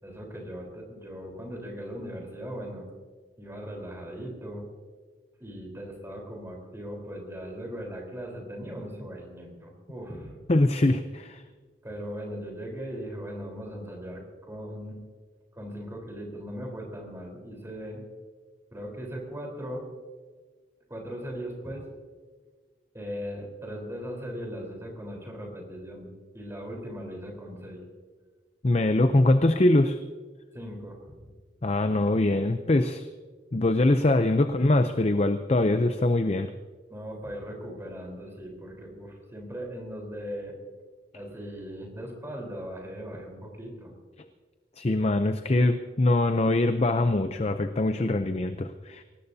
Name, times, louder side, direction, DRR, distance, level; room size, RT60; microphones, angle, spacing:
voice 1, 0.0-2.9 3.4-4.6 5.4-10.3 11.8-15.0 15.5-18.0 18.7-19.9 20.9-21.9 22.9-27.8 30.5-31.3 36.9-40.5 41.1-43.9, equal, 15° right, 0 dB, 4.0 m, -39 dB
voice 2, 10.5-11.4 28.6-30.0 31.6-33.1 33.5-36.5 44.8-49.0, left 2 dB, 35° left, 8 dB, 0.6 m, -23 dB
23.5 x 18.5 x 2.8 m, 1.5 s
head